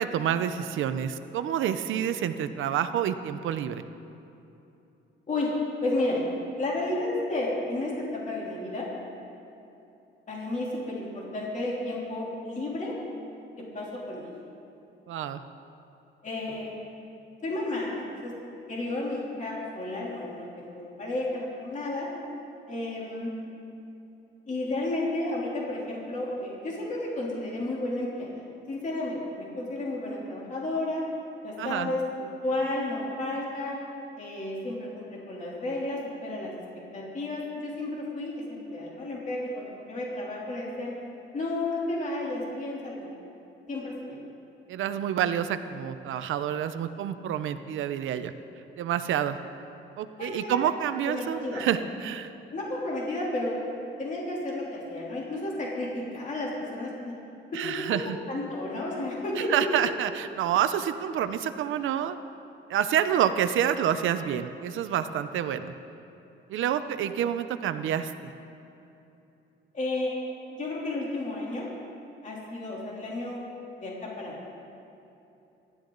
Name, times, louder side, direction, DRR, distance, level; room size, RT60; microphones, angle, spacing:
voice 1, 0.0-3.8 15.1-15.4 31.6-31.9 44.7-48.3 48.8-49.4 50.0-52.3 57.5-58.2 59.4-62.2 62.7-65.7 66.5-68.1, right 9 dB, 85° right, 10 dB, 0.7 m, -28 dB
voice 2, 5.8-6.2 6.6-8.9 10.3-12.9 13.6-14.3 16.2-16.7 17.4-18.3 18.7-22.1 22.7-23.3 24.5-28.3 28.7-31.0 31.4-33.7 34.2-36.5 36.9-41.0 41.3-43.1 43.7-44.2 50.2-50.6 51.0-51.6 52.5-57.2 57.5-59.5 69.7-70.1 70.5-71.7 72.2-73.4 73.8-74.4, left 2 dB, 40° left, -5 dB, 3.3 m, -32 dB
26.0 x 12.5 x 4.0 m, 2.9 s
cardioid pair, 120°, 20 cm